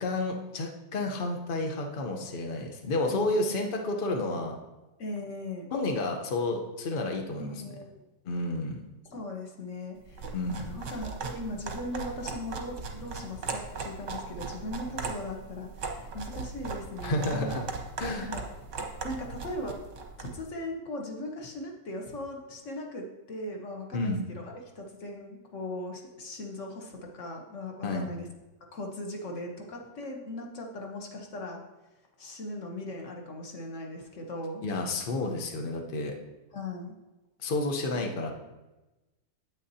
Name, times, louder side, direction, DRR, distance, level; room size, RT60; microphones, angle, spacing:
voice 1, 0.0-4.6 5.7-7.5 8.2-8.8 10.3-10.6 17.0-17.6 18.0-18.3 23.9-24.2 27.8-28.1 34.6-36.1 37.4-38.3, left 2 dB, 85° left, 3 dB, 0.4 m, -30 dB
voice 2, 3.1-3.6 5.0-5.7 7.4-8.0 9.1-17.6 18.1-18.4 19.0-19.8 20.2-28.3 28.7-31.6 32.2-34.6 36.5-36.9, left 1 dB, 45° left, 1 dB, 1.2 m, -39 dB
sound 1, 10.1-20.4, right 4 dB, 50° right, 1.0 m, -38 dB
9.2 x 8.4 x 2.7 m, 1.1 s
omnidirectional pair, 2.2 m